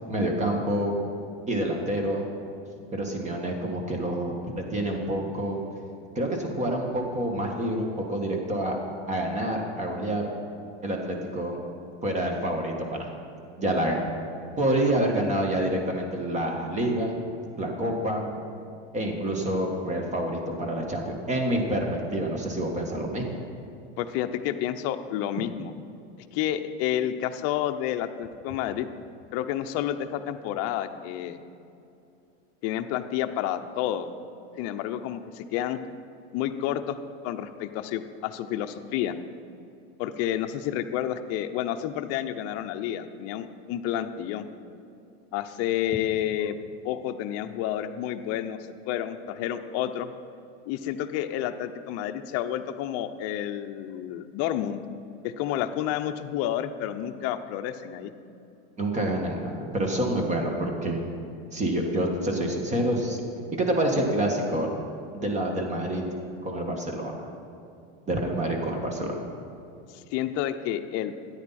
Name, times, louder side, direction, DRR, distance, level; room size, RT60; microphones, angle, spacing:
voice 1, 0.1-0.9 1.5-2.2 2.9-5.6 6.1-8.8 9.1-10.3 10.8-11.6 12.0-13.1 13.6-14.1 14.6-17.2 17.6-18.3 18.9-23.3 58.8-61.1 61.5-63.2 63.5-64.7 65.1-66.0 66.4-67.3 68.1-69.1, right 1 dB, 20° right, 2 dB, 1.8 m, -27 dB
voice 2, 24.0-25.7 26.3-28.9 29.3-31.4 32.6-34.1 34.6-35.8 36.3-37.0 37.2-39.2 40.0-44.5 45.3-46.6 46.8-48.6 48.9-50.1 50.7-54.8 55.2-58.1 69.9-71.1, left 11 dB, 50° left, 8 dB, 0.7 m, -30 dB
13.5 x 9.7 x 4.3 m, 2.7 s
supercardioid pair, 120°, 33 cm